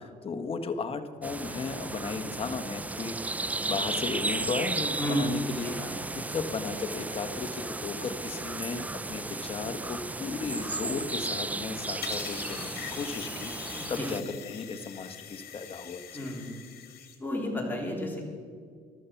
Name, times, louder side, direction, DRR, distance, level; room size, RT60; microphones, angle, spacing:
voice 1, 0.2-3.2 3.7-6.0 6.3-16.3, left 4 dB, 35° left, 8 dB, 1.2 m, -35 dB
sound 1, 1.2-14.2, right 2 dB, 10° right, 0.3 m, -34 dB
voice 2, 5.0-5.3 5.6-5.9 13.7-14.1 16.1-16.6 17.2-18.2, equal, 10° left, -1 dB, 3.5 m, -32 dB
sound 2, 12.0-17.2, left 9 dB, 65° left, 2.4 m, -43 dB
14.0 x 12.5 x 5.8 m, 2.1 s
cardioid pair, 110°, 17 cm